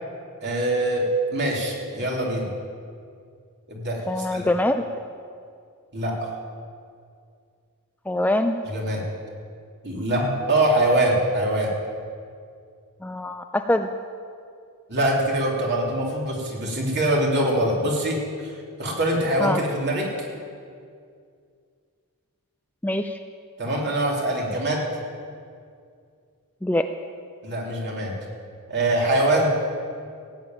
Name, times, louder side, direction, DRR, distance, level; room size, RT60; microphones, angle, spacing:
voice 1, 0.4-2.5 3.7-4.4 5.9-6.3 8.7-9.0 9.8-11.7 14.9-18.5 18.8-20.3 23.6-24.8 27.4-28.1 28.7-29.5, right 1 dB, 50° right, -2 dB, 2.9 m, -23 dB
voice 2, 4.1-4.9 8.1-8.5 13.0-13.9 19.4-19.6 22.8-23.2 26.6-26.9, left 1 dB, 5° left, 6 dB, 0.4 m, -23 dB
16.5 x 7.5 x 9.0 m, 2.3 s
head